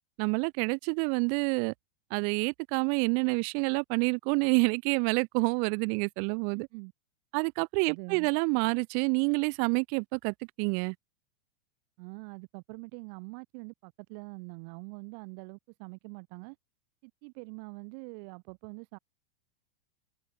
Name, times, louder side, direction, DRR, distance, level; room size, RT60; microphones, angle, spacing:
voice 1, 0.2-1.7 2.1-6.7 7.3-10.9, right 40 dB or more, 25° right, 0.4 m, -28 dB
voice 2, 6.5-6.9 7.9-8.3 12.0-16.6 17.0-19.0, right 37 dB, 45° right, 2.2 m, -44 dB
supercardioid pair, 155°, 31 cm